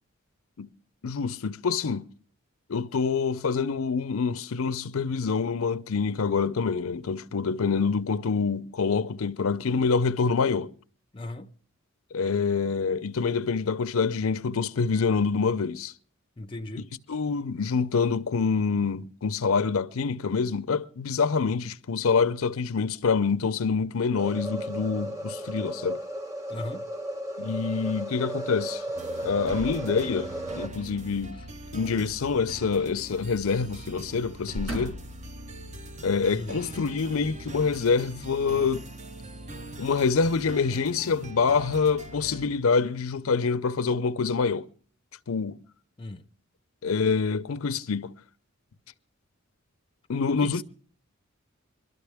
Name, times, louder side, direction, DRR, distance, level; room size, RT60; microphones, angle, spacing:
voice 1, 1.0-2.1 2.7-10.7 12.1-15.9 17.1-26.0 27.4-28.8 29.2-30.3 30.5-31.4 31.7-35.0 36.0-38.9 39.8-44.7 45.3-45.6 46.8-48.1 50.1-50.6, left 5 dB, 80° left, 0.6 m, -26 dB
voice 2, 11.1-11.5 16.4-16.9 26.5-26.9 36.3-36.7 46.0-46.2 50.1-50.6, left 2 dB, 25° left, 0.5 m, -37 dB
sound 1, 24.2-30.7, equal, 15° right, 1.4 m, -35 dB
sound 2, 29.0-42.5, right 2 dB, 35° right, 0.7 m, -42 dB
sound 3, 29.5-30.5 32.1-33.2 33.5-33.7 34.3-35.3 35.9-36.0, equal, 80° right, 5.3 m, -39 dB
23.0 x 12.5 x 3.4 m
head